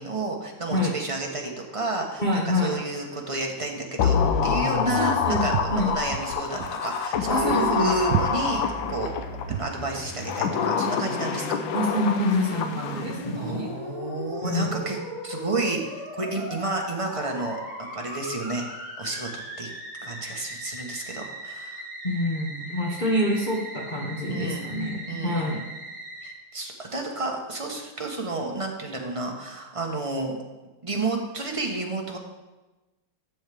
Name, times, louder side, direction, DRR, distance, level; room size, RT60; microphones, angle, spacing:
voice 1, 0.0-4.2 4.4-9.1 9.5-11.6 13.3-15.0 15.2-18.6 19.0-19.7 20.0-21.8 24.3-24.7 25.1-25.5 26.2-30.4 30.8-32.2, right 2 dB, 25° right, 0 dB, 0.8 m, -31 dB
voice 2, 2.2-2.8 4.8-5.4 5.7-5.9 7.3-7.9 11.7-13.7 14.4-14.9 22.0-25.6, left 1 dB, 30° left, -4 dB, 1.1 m, -26 dB
sound 1, 4.0-9.5 10.1-13.3 13.6-13.7, left 6 dB, 80° left, 1.4 m, -26 dB
Walk footsteps, 5.3-9.8, right 10 dB, 75° right, 0.9 m, -31 dB
Musical instrument, 7.2-26.3, equal, 45° left, 3.6 m, -39 dB
12.0 x 7.2 x 3.5 m, 1.1 s
omnidirectional pair, 2.1 m